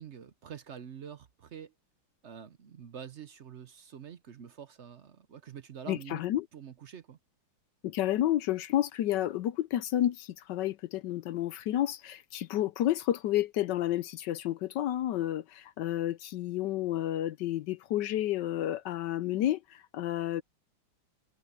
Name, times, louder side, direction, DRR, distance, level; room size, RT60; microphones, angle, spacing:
voice 1, 0.0-1.7 2.2-6.2 6.5-7.2, right 8 dB, 60° right, 0.7 m, -46 dB
voice 2, 5.9-6.5 7.8-20.4, left 13 dB, 70° left, 1.1 m, -30 dB
omnidirectional pair, 2.2 m